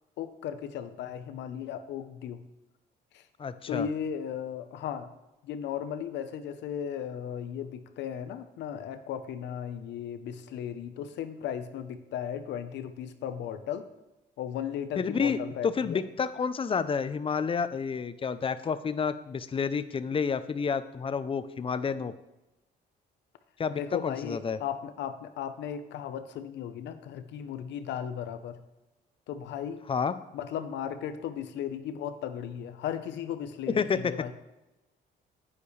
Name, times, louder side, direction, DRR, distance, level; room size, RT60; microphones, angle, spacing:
voice 1, 0.2-2.4 3.1-3.2 3.7-5.1 5.4-13.9 14.4-16.0 23.7-28.6 29.3-29.8 30.3-34.3, left 9 dB, 75° left, 10 dB, 0.9 m, -36 dB
voice 2, 3.4-3.9 15.0-22.1 23.6-24.6 29.9-30.2 33.7-34.1, left 6 dB, 30° left, 13 dB, 0.6 m, -30 dB
10.0 x 9.6 x 3.3 m, 0.99 s
cardioid pair, 90°, 18 cm